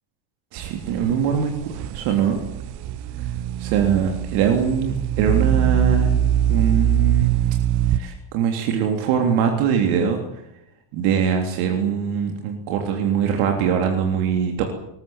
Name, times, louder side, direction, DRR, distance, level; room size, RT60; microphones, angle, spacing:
voice 1, 0.5-2.4 3.2-3.3 3.6-6.2 6.5-7.5 7.9-10.2 10.9-14.6, right 7 dB, 85° right, 4 dB, 3.6 m, -22 dB
sound 1, 0.6-8.0, right 10 dB, 55° right, 1.3 m, -22 dB
22.0 x 20.0 x 9.1 m, 0.80 s
cardioid pair, 175°, 49 cm